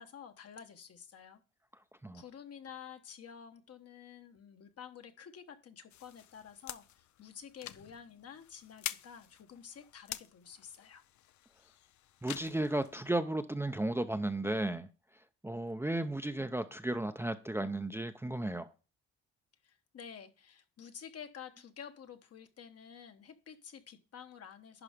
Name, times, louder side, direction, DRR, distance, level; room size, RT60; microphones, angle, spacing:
voice 1, 0.0-1.4 2.1-11.0 19.6-24.8, left 7 dB, 50° left, 1.2 m, -50 dB
sound 1, 5.9-13.2, left 12 dB, 70° left, 0.6 m, -47 dB
voice 2, 12.2-14.9 15.4-18.7, right 1 dB, 10° right, 0.6 m, -34 dB
11.0 x 4.2 x 5.0 m
cardioid pair, 90°, 30 cm